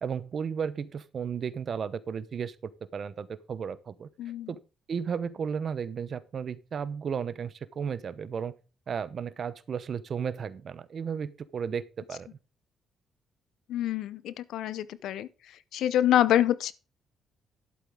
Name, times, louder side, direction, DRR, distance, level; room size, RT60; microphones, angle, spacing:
voice 1, 0.0-2.5 2.9-4.1 4.5-4.6 4.9-8.5 8.9-12.3, right 7 dB, 50° right, 0.9 m, -34 dB
voice 2, 4.2-4.5 13.7-15.3 15.7-16.7, left 11 dB, 80° left, 0.6 m, -26 dB
11.5 x 7.7 x 3.7 m
cardioid pair, 90°, 0 cm